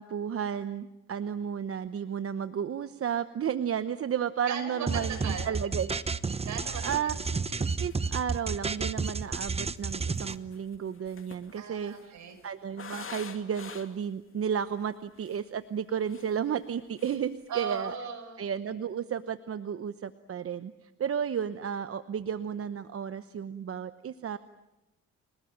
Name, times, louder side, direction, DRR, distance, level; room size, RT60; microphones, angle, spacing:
voice 1, 0.0-6.0 6.3-6.5 6.8-7.1 7.8-11.9 12.4-17.9 18.4-24.4, right 8 dB, 50° right, 12 dB, 1.0 m, -33 dB
voice 2, 4.5-5.5 6.4-7.4 11.6-12.4 17.5-18.4, right 7 dB, 70° right, 6 dB, 6.3 m, -38 dB
sound 1, 4.9-10.4, right 4 dB, 20° right, 1.0 m, -31 dB
sound 2, 7.0-7.1 7.5-7.6 7.8-8.3 9.1-14.1 14.7-14.8 15.1-15.5 15.9-16.7 17.0-17.3 17.6-17.9, left 6 dB, 45° left, 2.7 m, -47 dB
29.5 x 19.0 x 9.0 m, 0.98 s
cardioid pair, 90°, 30 cm